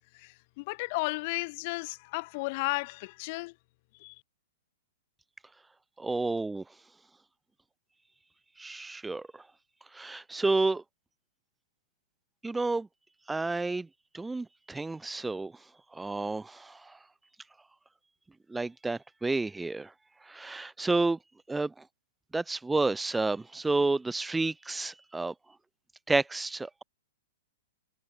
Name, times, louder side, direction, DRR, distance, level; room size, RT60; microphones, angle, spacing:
voice 1, 0.1-3.5 3.9-4.2, left 25 dB, 50° left, 3.1 m, -34 dB
voice 2, 6.0-6.6 8.6-9.4 9.9-10.8 12.4-12.9 13.3-13.9 14.1-15.5 15.9-17.0 18.5-19.9 20.2-21.2 21.5-21.7 22.3-25.3 26.1-26.8, right 3 dB, 10° right, 0.7 m, -30 dB
hypercardioid pair, 120°, 0 cm